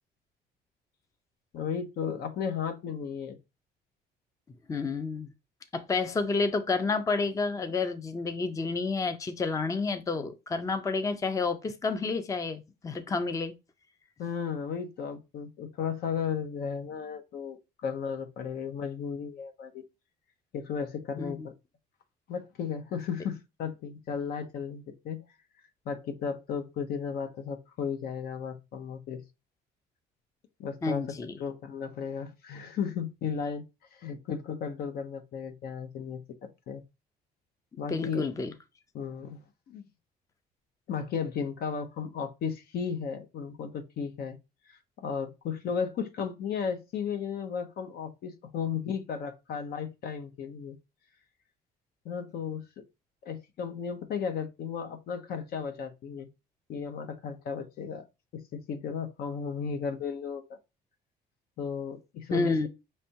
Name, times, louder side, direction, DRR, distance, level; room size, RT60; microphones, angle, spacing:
voice 1, 1.5-3.4 14.2-19.8 20.5-21.5 22.3-25.2 25.9-29.2 30.6-31.1 31.4-33.6 33.9-36.8 37.8-38.2 38.9-39.4 39.7-39.8 40.9-44.4 44.7-50.8 52.0-52.8 53.2-56.3 56.7-58.1 58.3-60.6 61.6-62.6, left 6 dB, 65° left, 0.8 m, -35 dB
voice 2, 4.7-5.3 5.7-13.5 21.2-21.5 30.8-31.3 37.9-38.5 62.3-62.7, left 4 dB, 20° left, 0.5 m, -30 dB
5.3 x 3.3 x 2.8 m
cardioid pair, 110°, 17 cm